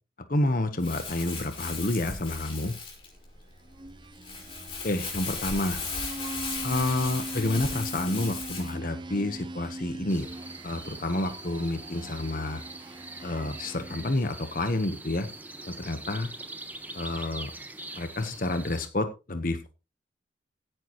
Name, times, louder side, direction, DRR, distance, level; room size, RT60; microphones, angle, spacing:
voice 1, 0.3-2.7 4.8-5.8 6.6-10.3 10.6-12.6 13.2-15.3 15.7-16.3 16.9-17.5 18.0-19.7, left 2 dB, 50° left, 9 dB, 1.1 m, -29 dB
Crumpling crinkling, 0.8-8.7, left 4 dB, 30° left, 5.1 m, -36 dB
sound 1, 3.5-14.4, right 2 dB, 25° right, 0.6 m, -41 dB
sound 2, 10.1-18.9, right 2 dB, 10° right, 1.2 m, -43 dB
16.0 x 9.1 x 3.1 m, 0.29 s
head